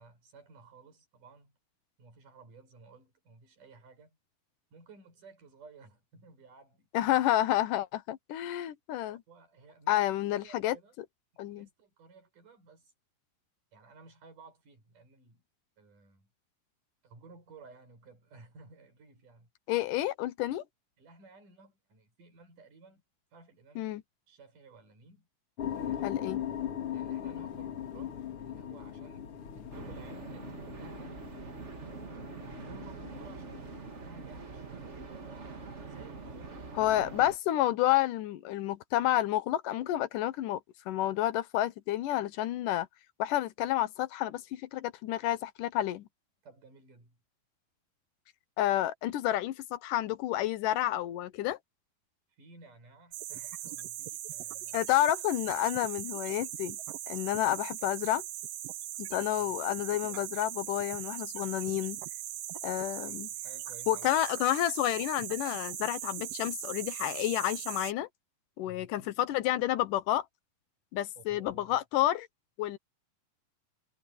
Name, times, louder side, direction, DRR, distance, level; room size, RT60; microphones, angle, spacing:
voice 1, 0.0-1.6 2.0-4.2 4.7-6.9 9.1-10.9 11.5-12.9 13.7-15.4 15.8-16.3 17.0-19.5 21.0-23.0 23.3-23.9 24.3-25.3 25.7-26.2 26.9-29.3 29.5-31.2 32.4-33.7 34.0-35.4 35.8-36.6 46.4-47.2 52.3-54.8 59.1-59.6 60.1-60.5 62.9-64.1 68.6-69.2 71.2-71.8, right 3 dB, 60° right, 8.0 m, -56 dB
voice 2, 6.9-9.2 9.9-10.8 11.4-11.7 19.7-20.6 23.8-24.0 26.0-26.4 36.8-40.6 40.9-42.9 43.2-46.1 48.6-51.6 54.7-56.8 57.1-58.2 59.0-62.0 62.6-63.3 63.9-68.1 68.6-70.3 70.9-72.3 72.6-72.8, left 13 dB, 75° left, 2.4 m, -30 dB
sound 1, 25.6-34.0, left 10 dB, 45° left, 2.4 m, -39 dB
sound 2, 29.7-37.4, right 4 dB, 35° right, 1.1 m, -44 dB
sound 3, 53.1-67.9, right 12 dB, 85° right, 1.4 m, -40 dB
omnidirectional pair, 4.1 m